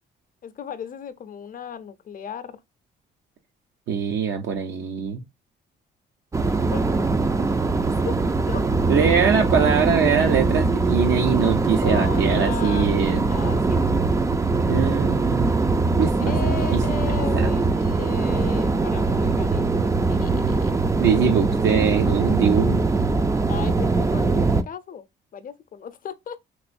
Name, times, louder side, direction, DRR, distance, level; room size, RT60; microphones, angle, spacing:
voice 1, 0.4-2.6 6.7-7.0 7.4-7.5 8.1-8.2 8.5-8.6 11.8-14.1 16.2-19.8 20.1-20.7 23.5-25.1 25.3-26.4, left 7 dB, 45° left, 0.6 m, -36 dB
voice 2, 3.9-5.2 8.9-13.3 14.7-15.5 16.0-16.5 17.3-17.5 21.0-22.8, right 6 dB, 70° right, 0.6 m, -22 dB
sound 1, 6.3-24.6, right 3 dB, 15° right, 0.3 m, -22 dB
3.0 x 3.0 x 2.4 m
cardioid pair, 90°, 20 cm